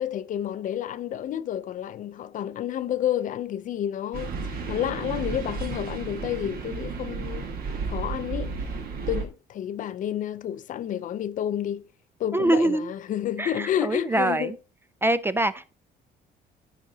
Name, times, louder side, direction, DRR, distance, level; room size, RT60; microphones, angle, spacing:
voice 1, 0.0-7.5 7.7-8.7 9.0-11.9 12.2-14.5, left 10 dB, 50° left, 0.5 m, -30 dB
sound 1, 4.1-9.2, right 4 dB, 60° right, 1.5 m, -33 dB
voice 2, 12.3-12.9 13.4-14.6 15.0-15.7, right 2 dB, 15° right, 0.3 m, -24 dB
13.5 x 5.0 x 2.7 m
cardioid pair, 110°, 17 cm